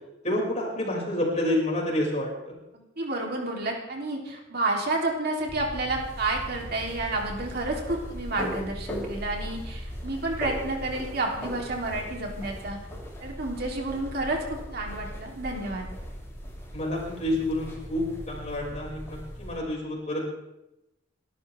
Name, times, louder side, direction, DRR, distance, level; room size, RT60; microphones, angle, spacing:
voice 1, 0.2-2.5 16.7-20.3, left 1 dB, 35° left, -3 dB, 6.2 m, -29 dB
voice 2, 2.7-12.8 13.2-15.9, right 2 dB, 55° right, 0 dB, 3.5 m, -30 dB
sound 1, 5.5-19.6, equal, 15° left, 7.8 m, -38 dB
29.5 x 13.5 x 3.6 m, 0.92 s
head